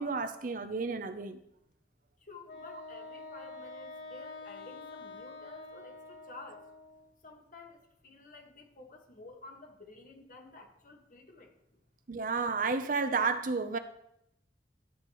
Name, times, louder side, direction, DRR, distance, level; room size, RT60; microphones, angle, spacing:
voice 1, 0.0-1.4 12.1-13.8, right 4 dB, 50° right, 0.6 m, -31 dB
voice 2, 2.3-6.6 7.2-11.5, left 3 dB, 50° left, 1.6 m, -51 dB
Wind instrument woodwind instrument, 2.5-7.1, left 3 dB, 80° left, 1.1 m, -47 dB
13.5 x 8.5 x 3.1 m
head